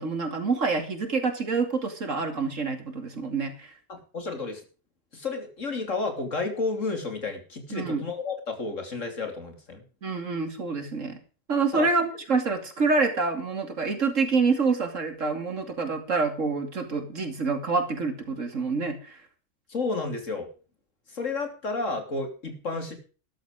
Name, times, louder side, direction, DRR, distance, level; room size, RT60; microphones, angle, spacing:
voice 1, 0.0-3.7 7.7-8.0 10.0-11.2 11.5-19.2, right 4 dB, 90° right, 6 dB, 3.0 m, -27 dB
voice 2, 3.9-4.6 5.1-9.8 11.7-11.9 19.7-20.5 21.1-23.0, left 3 dB, 85° left, 6 dB, 3.5 m, -31 dB
13.5 x 11.5 x 5.0 m, 0.38 s
omnidirectional pair, 1.3 m